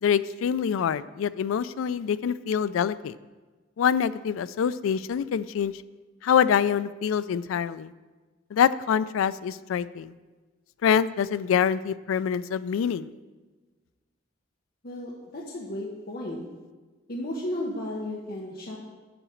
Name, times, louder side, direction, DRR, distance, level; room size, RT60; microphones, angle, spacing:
voice 1, 0.0-3.2 3.8-5.7 6.2-7.9 8.5-10.1 10.8-13.1, left 8 dB, 85° left, 16 dB, 0.3 m, -25 dB
voice 2, 14.8-16.4 17.1-18.8, left 1 dB, 50° left, -2 dB, 1.0 m, -34 dB
7.0 x 4.9 x 7.0 m, 1.3 s
head